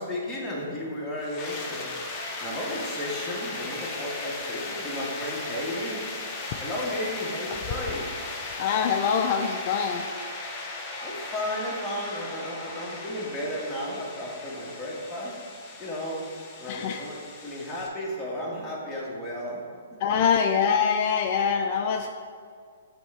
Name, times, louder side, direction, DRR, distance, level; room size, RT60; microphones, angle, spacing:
voice 1, 0.0-1.9 2.4-6.0 6.6-8.1 11.0-15.4 15.8-16.2 16.6-19.6, left 1 dB, 5° left, -6 dB, 1.4 m, -33 dB
sound 1, 1.2-17.9, left 3 dB, 25° left, 0.8 m, -37 dB
voice 2, 8.6-10.1 16.7-17.1 20.0-22.1, left 7 dB, 45° left, 5 dB, 0.3 m, -24 dB
6.9 x 3.6 x 4.3 m, 2.1 s
hypercardioid pair, 125°, 0 cm